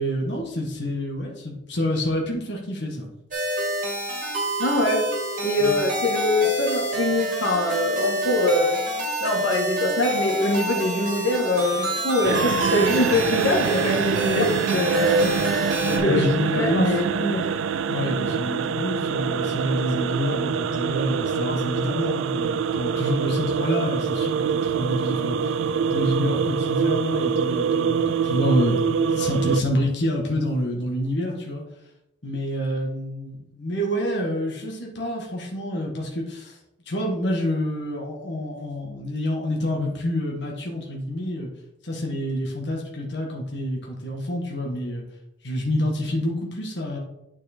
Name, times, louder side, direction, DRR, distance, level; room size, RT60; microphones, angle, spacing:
voice 1, 0.0-3.1 5.6-5.8 15.8-17.0 17.9-25.4 25.9-28.8 29.1-31.6 32.2-36.6 36.9-41.5 41.8-45.0 45.4-47.0, equal, 65° left, -1 dB, 1.6 m, -27 dB
sound 1, 3.3-16.0, equal, 45° right, 2.5 m, -28 dB
voice 2, 4.6-5.0 5.4-8.7 9.2-15.3 16.0-16.2 16.6-17.5, left 1 dB, 90° left, 1 dB, 1.6 m, -23 dB
sound 2, 12.2-29.6, right 6 dB, 90° right, 0.4 m, -25 dB
9.0 x 4.8 x 4.4 m, 0.88 s
head